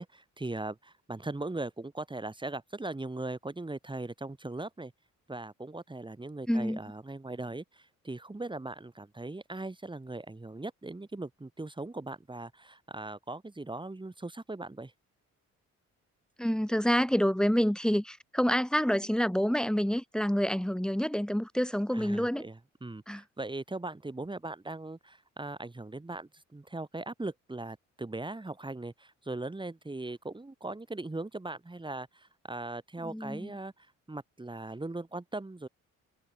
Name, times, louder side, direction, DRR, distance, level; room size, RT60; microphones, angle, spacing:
voice 1, 0.0-4.9 5.3-14.9 21.9-35.7, right 2 dB, 15° right, 5.1 m, -39 dB
voice 2, 6.5-6.8 16.4-22.4 23.1-23.2 33.0-33.5, equal, ahead, 4.9 m, -28 dB
cardioid pair, 90°, 30 cm